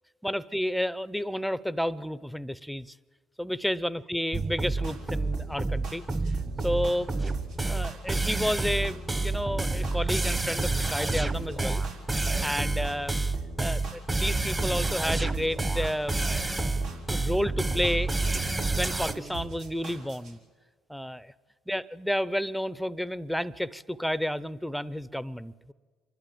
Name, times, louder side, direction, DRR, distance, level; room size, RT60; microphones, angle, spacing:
voice 1, 0.2-2.9 3.4-6.0 6.6-7.4 7.6-11.8 12.4-13.2 13.6-16.3 16.6-16.7 17.1-18.4 18.7-20.4 20.9-21.3 21.7-25.7, equal, ahead, 17 dB, 0.6 m, -31 dB
sound 1, 4.3-19.1, right 2 dB, 20° right, 1.1 m, -29 dB
sound 2, 4.3-20.3, right 3 dB, 85° right, 4.4 m, -41 dB
28.0 x 12.0 x 8.7 m, 1.5 s
supercardioid pair, 75°, 0 cm